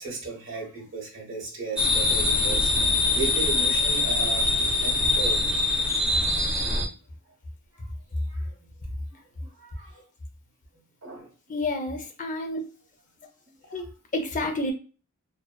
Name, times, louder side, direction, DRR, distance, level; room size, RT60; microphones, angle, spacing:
voice 1, 0.0-5.4 6.2-6.3 8.3-8.7 9.6-10.0 11.0-11.3, right 5 dB, 65° right, 1.1 m, -36 dB
sound 1, 1.8-6.9, left 3 dB, 5° right, 0.7 m, -23 dB
voice 2, 11.5-12.6 13.7-14.7, left 2 dB, 40° left, 0.5 m, -30 dB
2.6 x 2.1 x 2.2 m
head